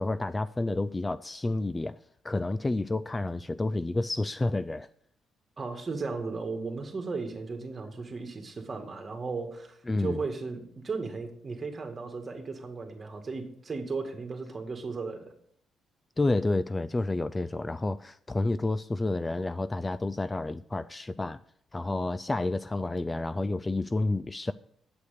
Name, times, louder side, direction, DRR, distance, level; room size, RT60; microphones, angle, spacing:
voice 1, 0.0-2.0 2.2-4.9 9.9-10.2 16.2-21.4 21.7-24.5, left 2 dB, 20° left, 0.3 m, -30 dB
voice 2, 5.6-15.3, right 4 dB, 35° right, 2.0 m, -36 dB
8.4 x 7.9 x 6.7 m
cardioid pair, 90°, 0 cm